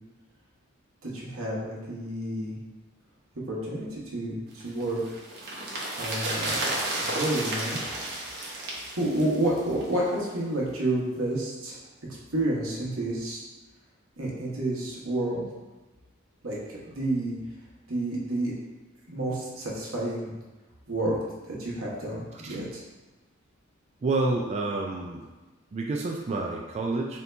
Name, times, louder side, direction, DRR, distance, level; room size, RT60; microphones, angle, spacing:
voice 1, 1.0-2.6 3.3-5.2 6.0-6.7 7.0-7.8 9.0-11.8 12.3-13.4 14.2-15.5 16.4-17.3 17.9-18.5 19.1-20.3 20.9-21.1 21.4-22.8, right 1 dB, 90° right, -5 dB, 1.2 m, -30 dB
sound 1, 4.6-10.0 10.3-10.4, right 1 dB, 50° right, 0.9 m, -32 dB
voice 2, 24.0-25.3 25.7-27.2, right 3 dB, 30° right, 0 dB, 0.3 m, -29 dB
4.2 x 2.8 x 3.3 m, 1.2 s
head